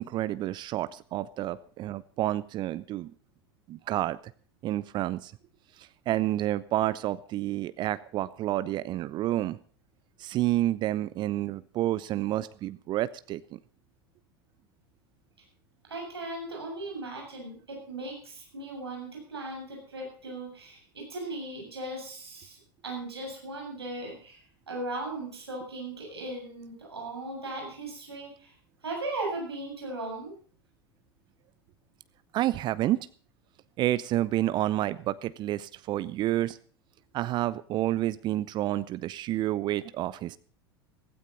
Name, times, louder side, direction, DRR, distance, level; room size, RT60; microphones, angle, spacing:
voice 1, 0.0-3.1 3.7-4.2 4.6-5.3 5.8-9.6 10.2-13.6 32.3-33.0 33.8-36.6 37.1-40.4, right 14 dB, 35° right, 17 dB, 0.6 m, -29 dB
voice 2, 15.9-22.6 22.8-24.4 24.7-28.5 28.8-30.3, right 2 dB, 75° right, 0 dB, 7.4 m, -37 dB
16.0 x 16.0 x 4.1 m, 0.43 s
figure-of-eight pair, 80°, 13 cm